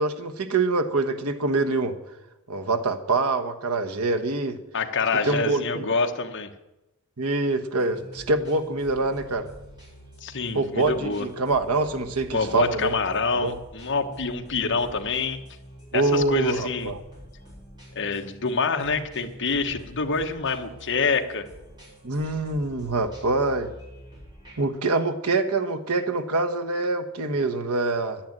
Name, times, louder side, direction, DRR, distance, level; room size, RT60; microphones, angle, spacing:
voice 1, 0.0-2.0 2.5-4.6 5.2-5.8 7.2-9.5 10.5-13.0 13.3-13.6 15.9-17.0 22.0-23.7 24.6-28.2, right 3 dB, 80° right, 6 dB, 1.3 m, -25 dB
voice 2, 4.7-6.5 10.2-11.3 12.3-15.4 15.9-16.9 17.9-21.5, left 4 dB, 55° left, 5 dB, 1.3 m, -26 dB
sound 1, 7.7-24.7, equal, 20° right, 7.0 m, -46 dB
10.5 x 10.0 x 9.1 m, 0.95 s
head